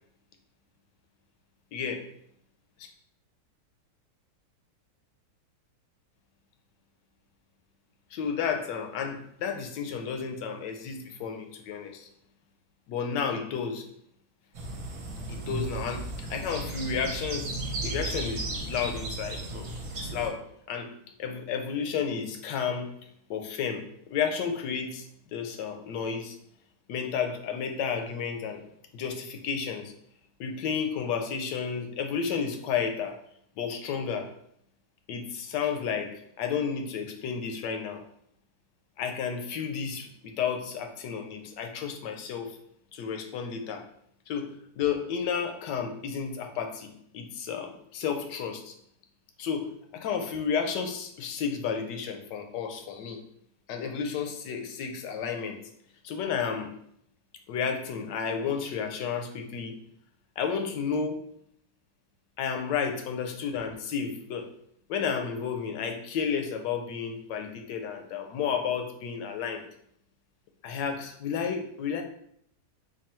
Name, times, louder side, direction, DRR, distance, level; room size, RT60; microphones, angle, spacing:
voice 1, 1.7-2.1 2.8-2.9 8.1-12.1 12.9-13.9 15.3-17.5 17.8-19.7 20.0-20.9 21.2-22.9 23.3-23.8 24.1-25.1 25.3-26.4 26.9-28.6 28.9-29.9 30.4-33.2 33.6-34.3 35.1-38.0 39.0-42.6 42.9-43.8 44.3-48.7 49.4-53.2 53.7-55.6 56.0-56.7 57.5-59.8 60.4-61.2 62.4-64.5 64.9-69.7 70.6-72.0, left 6 dB, 80° left, 5 dB, 1.2 m, -32 dB
sound 1, 14.5-20.3, right 2 dB, 60° right, 1.2 m, -35 dB
3.7 x 2.3 x 4.2 m, 0.69 s
omnidirectional pair, 1.9 m